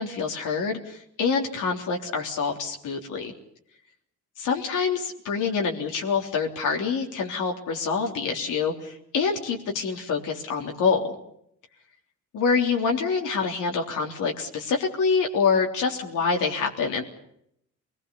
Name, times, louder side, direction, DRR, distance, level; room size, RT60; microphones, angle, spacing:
voice 1, 0.0-3.3 4.4-11.1 12.3-17.0, left 5 dB, 80° left, 1 dB, 3.5 m, -26 dB
27.0 x 21.0 x 7.0 m, 0.74 s
cardioid pair, 90°, 30 cm